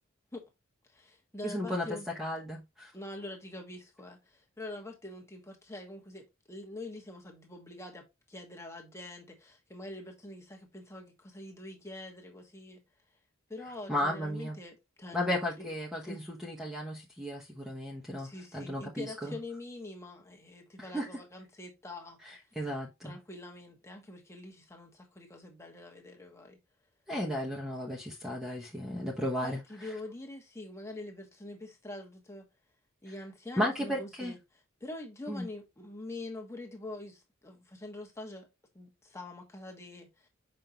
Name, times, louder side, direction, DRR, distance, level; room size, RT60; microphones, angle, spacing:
voice 1, 0.9-2.1 2.9-12.8 13.5-15.7 16.1-16.2 18.2-22.2 23.0-26.6 29.4-32.5 33.0-34.4 34.8-38.5 38.7-40.3, left 2 dB, 15° left, 1.4 m, -45 dB
voice 2, 1.4-1.9 2.2-2.9 13.9-14.6 15.1-19.4 20.8-21.1 22.2-23.1 27.1-29.9 33.6-34.3 35.3-35.5, left 1 dB, ahead, 1.2 m, -34 dB
6.3 x 5.4 x 3.0 m
head